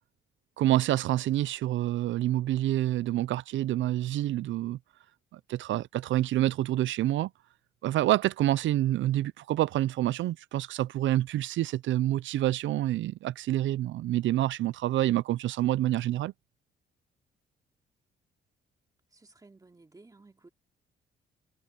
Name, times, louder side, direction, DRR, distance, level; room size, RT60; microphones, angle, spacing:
voice 1, 0.6-4.8 5.3-7.3 7.8-16.3, right 14 dB, 70° right, 0.5 m, -27 dB
voice 2, 19.1-20.5, right 3 dB, 20° right, 2.7 m, -55 dB
cardioid pair, 90°, 20 cm